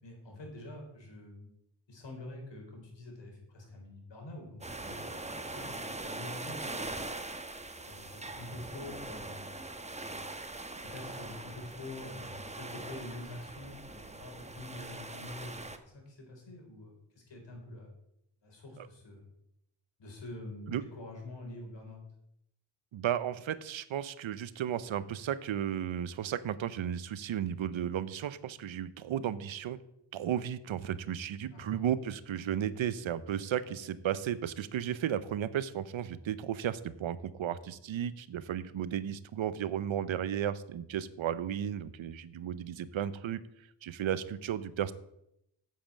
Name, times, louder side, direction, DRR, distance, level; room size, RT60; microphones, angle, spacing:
voice 1, 0.0-1.5 1.9-7.0 7.9-9.5 10.0-10.2 10.8-17.9 18.4-19.3 20.0-22.0 31.5-31.8, left 2 dB, 65° left, 1 dB, 4.3 m, -46 dB
sound 1, 4.6-15.8, right 2 dB, 15° right, 1.1 m, -42 dB
voice 2, 22.9-29.8 30.1-43.4 43.8-44.9, right 10 dB, 80° right, 15 dB, 0.8 m, -34 dB
8.6 x 7.6 x 7.4 m, 0.80 s
cardioid pair, 65°, 46 cm